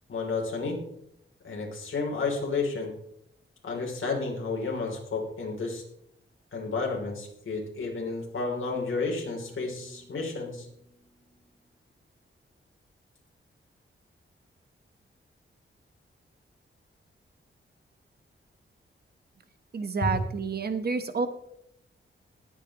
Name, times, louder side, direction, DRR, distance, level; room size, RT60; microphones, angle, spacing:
voice 1, 0.1-0.8 1.4-2.9 3.6-5.8 6.5-10.7 20.0-20.1, left 3 dB, 70° left, 0 dB, 3.2 m, -31 dB
sound 1, 8.7-11.8, equal, 10° left, 4.9 m, -58 dB
voice 2, 19.7-21.3, right 4 dB, 50° right, 9 dB, 1.1 m, -29 dB
19.5 x 8.8 x 3.0 m, 0.76 s
wide cardioid pair, 155°, 21 cm